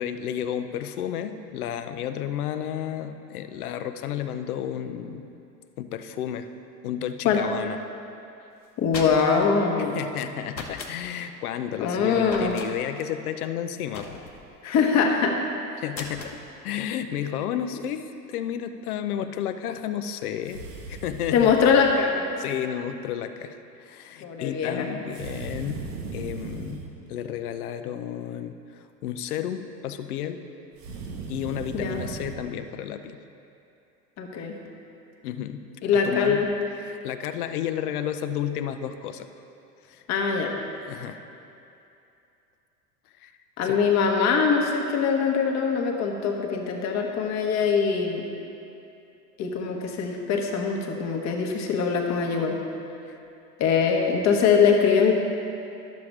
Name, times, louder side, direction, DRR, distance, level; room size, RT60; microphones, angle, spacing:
voice 1, 0.0-5.3 5.8-6.5 6.8-7.8 9.9-14.1 15.8-16.4 16.6-20.6 20.9-21.8 22.4-25.8 26.1-26.8 27.1-30.4 31.3-33.2 35.2-35.6 35.9-36.4 36.8-39.3 39.8-40.0 40.8-41.2 43.2-43.3 43.6-43.8, left 10 dB, 60° left, 9 dB, 0.6 m, -32 dB
sound 1, 8.6-9.5 10.5-11.0 12.3-12.7 13.9-14.5 15.9-16.4, left 4 dB, 90° left, 0.8 m, -38 dB
voice 2, 8.8-10.0 11.8-12.6 14.6-15.4 21.3-22.3 24.2-24.9 31.7-32.0 34.2-34.5 35.8-36.5 40.1-40.5 43.6-48.3 49.4-52.6 53.6-55.1, left 6 dB, 35° left, 1 dB, 1.1 m, -22 dB
sound 2, 20.4-21.9 25.1-26.9 30.7-32.4, right 4 dB, 65° right, 1.2 m, -37 dB
11.5 x 6.9 x 3.3 m, 2.7 s
figure-of-eight pair, 85°, 50 cm